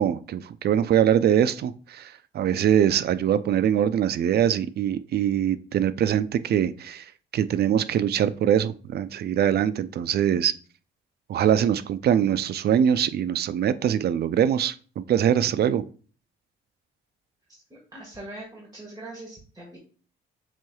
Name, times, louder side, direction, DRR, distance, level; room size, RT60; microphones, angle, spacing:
voice 1, 0.0-7.0 7.3-10.5 11.3-15.8, right 9 dB, 55° right, 14 dB, 0.4 m, -23 dB
voice 2, 17.7-19.8, right 2 dB, 20° right, -3 dB, 1.6 m, -41 dB
7.2 x 3.2 x 2.3 m, 0.40 s
cardioid pair, 90°, 20 cm